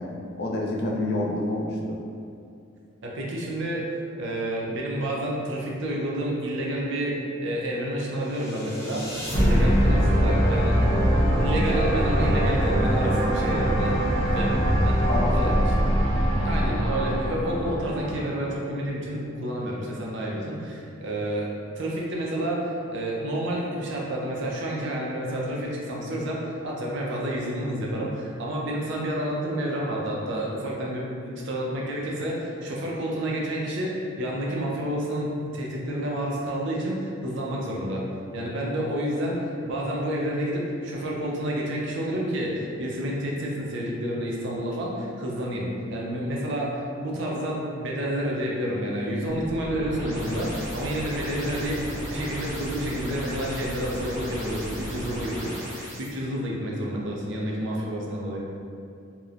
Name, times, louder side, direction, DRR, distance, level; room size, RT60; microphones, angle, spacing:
voice 1, 0.0-2.0 15.1-15.6, left 2 dB, 55° left, -1 dB, 0.4 m, -28 dB
voice 2, 3.0-3.9 4.2-10.8 11.3-15.5 16.4-21.5 21.8-38.0 38.3-58.4, right 1 dB, 65° right, -3 dB, 0.5 m, -29 dB
sound 1, 8.4-18.6, equal, 15° left, 0.6 m, -23 dB
sound 2, 49.3-56.1, equal, 15° right, 1.0 m, -35 dB
2.9 x 2.0 x 2.4 m, 2.5 s
head